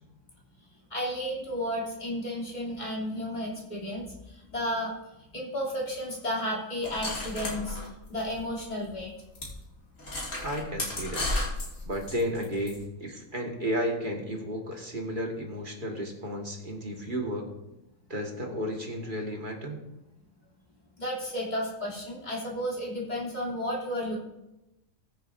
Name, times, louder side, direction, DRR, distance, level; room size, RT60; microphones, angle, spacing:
voice 1, 0.9-4.0 4.5-4.9 5.3-7.8 8.1-9.1 21.0-24.2, equal, 30° left, -4 dB, 3.0 m, -32 dB
sound 1, 6.8-8.6 8.9-9.0 9.4-9.5 10.0-12.8, left 1 dB, 70° left, 2.8 m, -34 dB
voice 2, 10.4-11.3 11.9-17.5 18.1-19.8, equal, 40° right, 1 dB, 1.8 m, -33 dB
20.5 x 6.9 x 2.6 m, 0.92 s
omnidirectional pair, 1.4 m